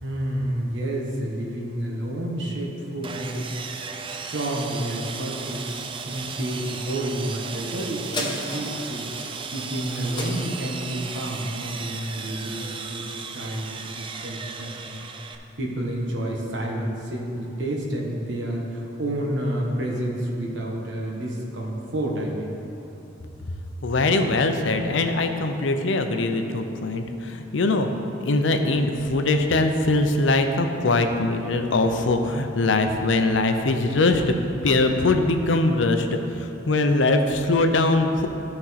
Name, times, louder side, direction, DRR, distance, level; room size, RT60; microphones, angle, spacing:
voice 1, 0.0-5.7 6.0-9.1 9.5-15.0 15.6-22.6, right 1 dB, 70° right, -2 dB, 1.1 m, -30 dB
Sawing, 3.0-15.4, right 5 dB, 30° right, 0.4 m, -35 dB
sound 1, 8.1-12.9 13.4-13.5, left 1 dB, 25° left, 1.1 m, -36 dB
voice 2, 23.8-27.9 28.2-34.2 34.6-38.3, left 2 dB, 90° left, 6 dB, 0.6 m, -22 dB
13.0 x 4.3 x 4.1 m, 2.9 s
head